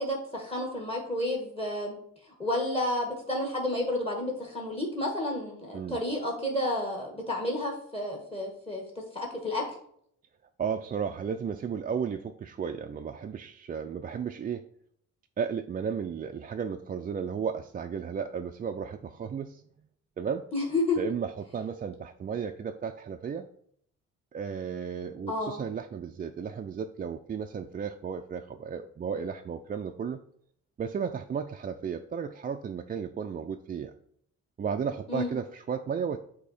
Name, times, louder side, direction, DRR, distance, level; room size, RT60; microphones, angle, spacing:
voice 1, 0.0-1.9 2.4-8.8 9.1-9.6 20.5-21.0 25.3-25.6 35.1-35.4, left 1 dB, 20° left, -1 dB, 1.4 m, -31 dB
voice 2, 10.6-14.7 15.4-19.6 20.2-20.5 21.0-23.5 24.3-30.2 30.8-33.9 34.6-36.2, right 7 dB, 30° right, 5 dB, 0.4 m, -34 dB
8.2 x 2.8 x 4.2 m, 0.67 s
cardioid pair, 90°, 30 cm